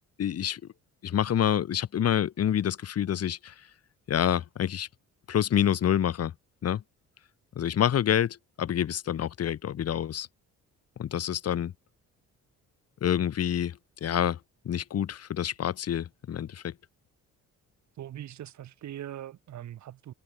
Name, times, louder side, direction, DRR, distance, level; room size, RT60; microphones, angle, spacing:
voice 1, 0.2-0.6 1.0-3.5 4.1-4.9 5.3-6.3 6.6-6.8 7.5-10.3 11.0-11.7 13.0-14.4 14.6-16.7, left 10 dB, 55° left, 1.4 m, -27 dB
voice 2, 18.0-20.1, right 11 dB, 70° right, 2.1 m, -41 dB
cardioid pair, 90°, 30 cm